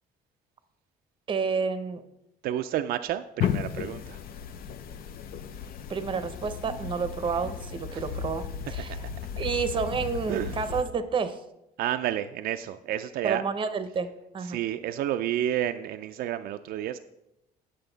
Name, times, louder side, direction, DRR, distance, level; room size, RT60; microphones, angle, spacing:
voice 1, 1.3-2.0 5.9-9.0 9.4-11.4 13.2-14.6, right 5 dB, 30° right, 11 dB, 0.7 m, -30 dB
voice 2, 2.4-4.2 7.9-8.0 10.3-10.5 11.8-13.4 14.5-17.0, right 11 dB, 65° right, 8 dB, 0.4 m, -30 dB
sound 1, 3.4-10.8, left 8 dB, 60° left, 0.6 m, -35 dB
9.0 x 6.5 x 3.9 m, 0.88 s
cardioid pair, 110°, 17 cm